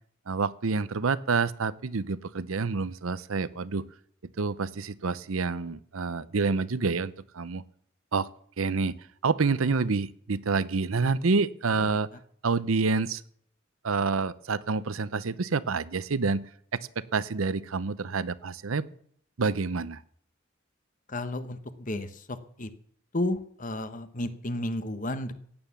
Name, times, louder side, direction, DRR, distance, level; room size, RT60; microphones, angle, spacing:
voice 1, 0.3-3.9 4.4-7.6 8.1-8.3 8.6-8.9 9.2-12.1 12.4-13.2 13.8-16.4 16.7-18.9 19.4-20.0, right 4 dB, 85° right, 17 dB, 0.7 m, -28 dB
voice 2, 21.1-22.7 23.1-25.3, left 1 dB, 40° left, 11 dB, 1.1 m, -32 dB
16.0 x 9.6 x 7.1 m, 0.63 s
head